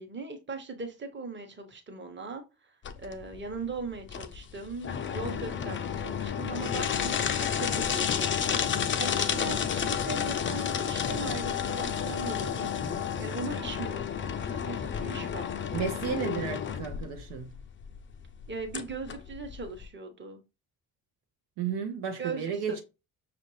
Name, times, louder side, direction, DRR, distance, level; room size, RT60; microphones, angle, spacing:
voice 1, 0.0-15.5 18.5-20.4 22.2-22.8, right 3 dB, 25° right, 1.1 m, -39 dB
sound 1, 2.8-19.9, left 8 dB, 25° left, 0.5 m, -31 dB
voice 2, 15.7-17.5 21.6-22.8, right 6 dB, 60° right, 0.8 m, -33 dB
5.9 x 2.4 x 3.1 m
figure-of-eight pair, 40°, 47 cm